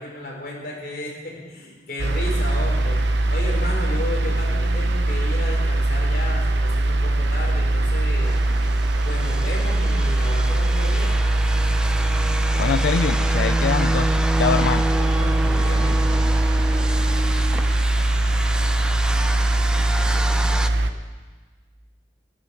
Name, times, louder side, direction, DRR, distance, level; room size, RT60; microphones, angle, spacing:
voice 1, 0.0-3.0 3.3-8.3 9.1-11.2 14.8-16.0, left 1 dB, 55° left, -2 dB, 4.4 m, -33 dB
sound 1, 2.0-20.9, right 1 dB, 85° right, 0.8 m, -21 dB
sound 2, 8.2-20.7, right 1 dB, 5° right, 0.4 m, -29 dB
voice 2, 12.6-14.9, left 6 dB, 75° left, 13 dB, 0.3 m, -24 dB
14.0 x 12.5 x 6.2 m, 1.4 s
head